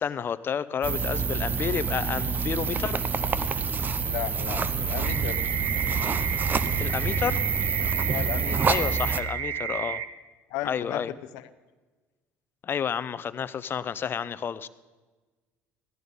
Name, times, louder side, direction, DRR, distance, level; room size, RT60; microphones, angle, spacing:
voice 1, 0.0-3.0 6.8-7.5 8.7-10.0 10.6-11.1 12.6-14.7, left 7 dB, 40° left, 15 dB, 0.6 m, -30 dB
sound 1, 0.8-9.2, right 5 dB, 30° right, 0.7 m, -27 dB
voice 2, 3.9-5.5 8.1-8.7 10.5-11.5, left 13 dB, 80° left, 11 dB, 0.7 m, -35 dB
sound 2, 5.0-10.0, right 8 dB, 85° right, 0.9 m, -33 dB
15.5 x 11.0 x 5.4 m, 1.3 s
supercardioid pair, 95°, 6 cm